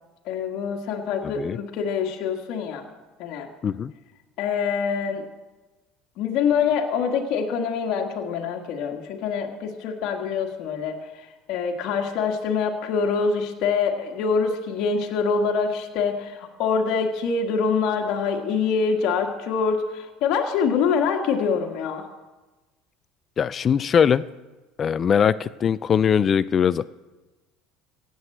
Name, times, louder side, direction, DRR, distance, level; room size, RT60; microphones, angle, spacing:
voice 1, 0.3-2.8 3.2-3.5 4.4-5.3 6.2-11.0 11.5-22.0, left 5 dB, 65° left, 2 dB, 1.7 m, -25 dB
voice 2, 23.4-24.2 24.8-26.9, left 7 dB, 40° left, 18 dB, 0.4 m, -21 dB
16.0 x 7.8 x 7.8 m, 1.2 s
supercardioid pair, 95°, 0 cm